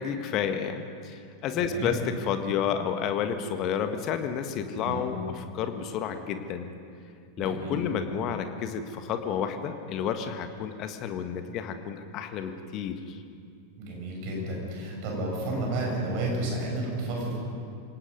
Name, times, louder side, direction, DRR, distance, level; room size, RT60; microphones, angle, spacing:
voice 1, 0.0-6.7 7.4-13.2, left 8 dB, 35° left, 7 dB, 1.6 m, -31 dB
voice 2, 1.5-2.0 4.8-5.1 7.4-7.8 13.8-17.4, right 2 dB, 45° right, -1 dB, 7.2 m, -31 dB
27.0 x 18.0 x 5.5 m, 2.3 s
figure-of-eight pair, 90°, 0 cm